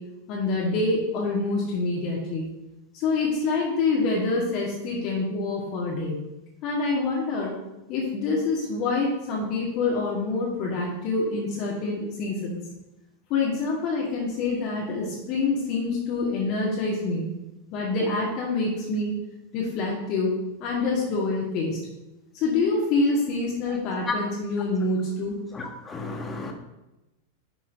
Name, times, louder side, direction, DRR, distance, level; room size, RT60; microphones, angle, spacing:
voice 1, 0.3-2.4 2.9-6.1 6.6-7.5 7.9-12.6 13.3-17.2 17.7-19.1 19.5-20.3 20.6-21.8 22.3-25.4, left 3 dB, 40° left, -4 dB, 1.6 m, -26 dB
voice 2, 25.9-26.5, left 3 dB, 15° left, 2 dB, 1.3 m, -31 dB
10.5 x 6.0 x 2.6 m, 0.97 s
figure-of-eight pair, 90°, 0 cm